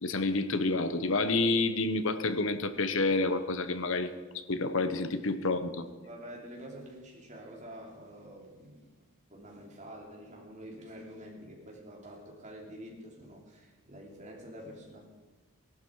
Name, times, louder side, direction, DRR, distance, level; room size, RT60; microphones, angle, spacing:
voice 1, 0.0-5.7, left 3 dB, 75° left, 11 dB, 0.9 m, -29 dB
voice 2, 5.4-9.0 9.3-15.1, equal, 35° right, -1 dB, 3.2 m, -47 dB
18.5 x 12.0 x 4.7 m, 1.3 s
head